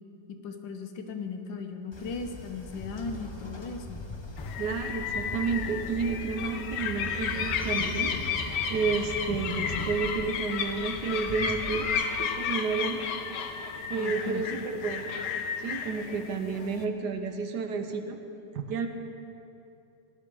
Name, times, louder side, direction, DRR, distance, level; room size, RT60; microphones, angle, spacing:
voice 1, 0.4-4.0 14.0-14.4, left 4 dB, 90° left, 5 dB, 1.6 m, -37 dB
Train, 1.9-11.9, left 1 dB, 45° left, 0.3 m, -40 dB
sound 1, 4.4-16.8, left 7 dB, 75° left, 1.3 m, -33 dB
voice 2, 4.6-8.1 8.7-11.9 12.2-13.1 13.9-15.2 15.6-18.2 18.5-18.9, right 5 dB, 70° right, 6 dB, 1.3 m, -31 dB
17.0 x 10.5 x 3.8 m, 2.7 s
omnidirectional pair, 2.0 m